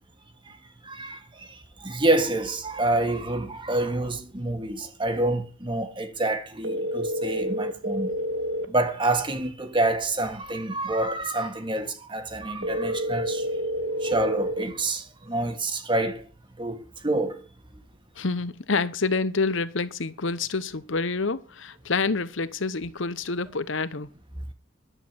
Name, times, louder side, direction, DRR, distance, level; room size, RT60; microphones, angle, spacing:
voice 1, 0.8-8.1 8.7-13.5 14.0-16.2 16.6-17.4, right 2 dB, 25° right, 1.6 m, -27 dB
sound 1, 6.6-8.6 12.6-14.6, equal, 55° right, 1.4 m, -28 dB
voice 2, 18.2-24.1, left 4 dB, 65° left, 0.9 m, -27 dB
11.0 x 8.4 x 7.4 m
head